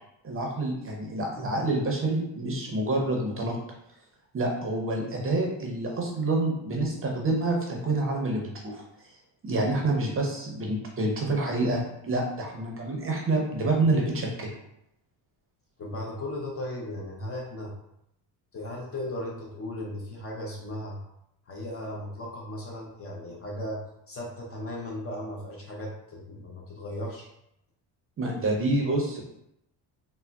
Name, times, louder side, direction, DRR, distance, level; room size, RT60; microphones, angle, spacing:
voice 1, 0.2-3.6 4.3-8.8 9.4-14.5 28.2-29.2, right 2 dB, 30° right, 0 dB, 0.6 m, -27 dB
voice 2, 15.8-17.7 18.5-21.0 21.5-23.8 24.1-27.3, left 1 dB, 30° left, -1 dB, 0.5 m, -36 dB
3.7 x 2.0 x 2.2 m, 0.80 s
cardioid pair, 100°, 45 cm